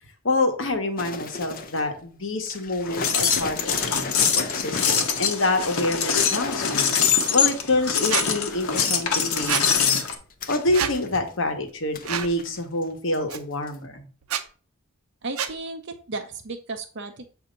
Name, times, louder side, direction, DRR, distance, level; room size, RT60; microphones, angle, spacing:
voice 1, 0.2-6.9 7.3-10.0 10.5-14.1, left 2 dB, 60° left, 5 dB, 1.1 m, -27 dB
sound 1, 1.0-2.0 2.5-7.4 8.1-9.0 9.4-11.5 11.9-12.9 13.1-13.4 13.7-13.8, left 4 dB, 40° left, 0.5 m, -36 dB
sound 2, 2.8-10.1, left 7 dB, 85° left, 1.0 m, -23 dB
Squeak, 8.1-8.3 9.5-9.6 10.7-10.9 12.0-12.3 13.3-13.4 14.2-14.4 15.4-15.5, right 8 dB, 85° right, 0.7 m, -26 dB
voice 2, 15.2-17.3, right 3 dB, 55° right, 4 dB, 0.6 m, -34 dB
7.7 x 2.7 x 5.1 m, 0.40 s
head